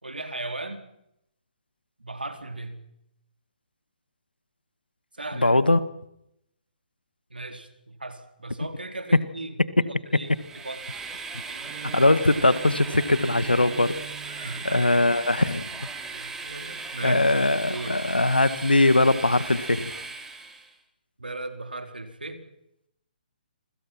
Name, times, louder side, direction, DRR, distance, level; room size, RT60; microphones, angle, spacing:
voice 1, 0.0-0.8 2.0-2.8 5.1-5.6 7.3-10.9 11.5-11.7 14.4-15.5 16.1-17.3 17.7-18.0 21.2-22.4, right 2 dB, 85° right, 7 dB, 4.2 m, -37 dB
voice 2, 5.4-5.8 11.9-13.9 14.7-15.9 17.0-19.9, left 2 dB, 90° left, 14 dB, 1.8 m, -21 dB
Train, 10.2-20.7, right 4 dB, 10° right, 3.9 m, -37 dB
Bowed string instrument, 11.6-15.9, right 10 dB, 45° right, 1.8 m, -43 dB
27.5 x 24.5 x 6.0 m, 0.80 s
figure-of-eight pair, 135°, 5 cm